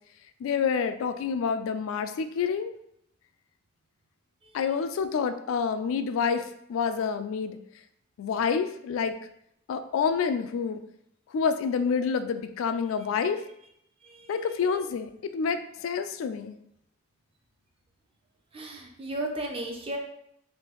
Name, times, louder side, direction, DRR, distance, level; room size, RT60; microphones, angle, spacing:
voice 1, 0.4-2.7 4.5-7.6 8.2-9.1 9.7-10.8 11.3-13.4 14.3-16.6, left 6 dB, 80° left, 9 dB, 0.3 m, -28 dB
voice 2, 18.5-20.0, right 1 dB, 30° right, 2 dB, 0.5 m, -34 dB
3.3 x 2.6 x 2.9 m, 0.74 s
head